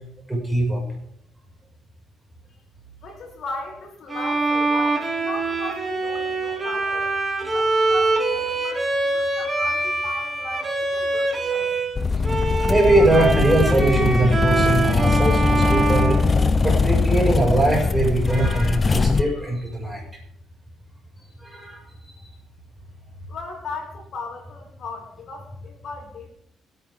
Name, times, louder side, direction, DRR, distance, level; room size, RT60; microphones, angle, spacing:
voice 1, 0.3-0.8 12.7-20.0 21.4-21.8, right 2 dB, 10° right, -1 dB, 6.1 m, -21 dB
voice 2, 3.0-7.1 7.5-11.7 23.3-26.3, left 3 dB, 65° left, 0 dB, 4.9 m, -37 dB
Bowed string instrument, 4.1-12.0 12.2-17.0, right 2 dB, 25° right, 2.8 m, -24 dB
sound 1, 11.9-19.2, left 4 dB, 35° left, 0.7 m, -21 dB
23.5 x 9.3 x 3.7 m, 0.69 s
cardioid pair, 90°, 0 cm